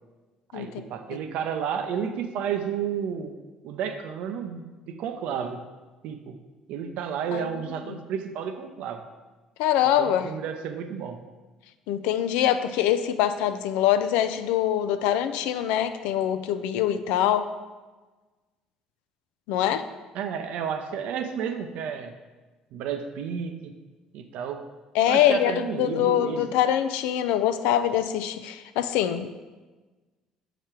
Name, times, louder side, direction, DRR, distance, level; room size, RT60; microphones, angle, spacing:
voice 1, 0.5-5.6 6.0-6.4 6.7-9.0 10.0-11.2 20.1-22.1 22.7-23.8 24.1-24.7 25.1-26.4, right 7 dB, 70° right, 7 dB, 0.6 m, -32 dB
voice 2, 9.6-10.3 11.9-17.5 19.5-19.8 24.9-29.4, left 11 dB, 75° left, 10 dB, 0.4 m, -24 dB
6.7 x 5.0 x 4.4 m, 1.3 s
hypercardioid pair, 60°, 2 cm